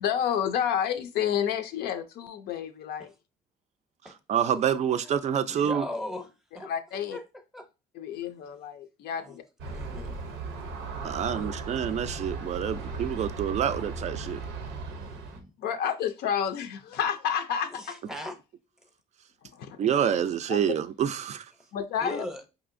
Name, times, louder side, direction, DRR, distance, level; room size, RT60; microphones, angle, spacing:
voice 1, 0.0-3.1 6.7-7.2 8.0-9.4 15.6-18.0 19.5-19.8 20.5-20.6 21.7-22.3, left 8 dB, 70° left, 0.4 m, -30 dB
voice 2, 4.3-5.9 11.0-14.4 19.8-21.5, right 8 dB, 40° right, 0.4 m, -27 dB
voice 3, 5.5-6.3 6.5-6.7 7.1-7.2 7.5-7.7 8.2-8.3 9.2-9.4 9.6-10.2 11.0-11.6 14.9-15.5 17.7-18.4 21.6-21.7 22.0-22.4, left 1 dB, 5° right, 0.7 m, -39 dB
Aircraft, 9.6-15.4, right 3 dB, 90° right, 0.6 m, -36 dB
4.8 x 2.7 x 2.5 m
cardioid pair, 110°, 17 cm